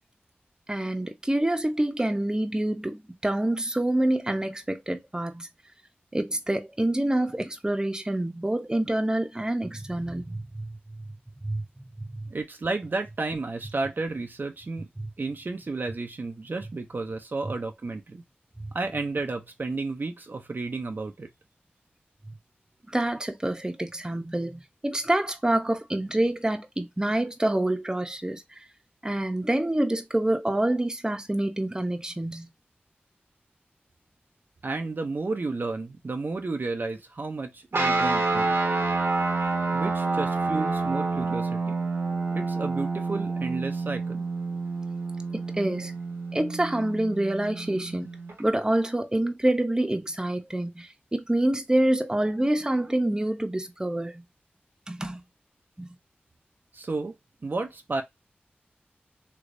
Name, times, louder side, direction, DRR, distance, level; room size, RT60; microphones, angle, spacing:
voice 1, 0.7-5.5 6.1-10.7 11.4-11.6 12.2-12.3 18.6-18.7 22.9-28.6 29.0-32.5 45.3-45.9 46.3-48.1 48.4-54.2 54.9-55.2 55.8-55.9, right 1 dB, 20° right, 0.7 m, -27 dB
voice 2, 12.3-14.9 15.2-18.2 18.7-21.3 34.6-38.6 39.7-41.7 42.3-44.3 56.7-57.2 57.4-58.0, right 3 dB, 55° right, 0.5 m, -32 dB
sound 1, 37.7-48.4, right 3 dB, 85° right, 1.0 m, -28 dB
3.2 x 3.1 x 2.5 m
cardioid pair, 40°, 4 cm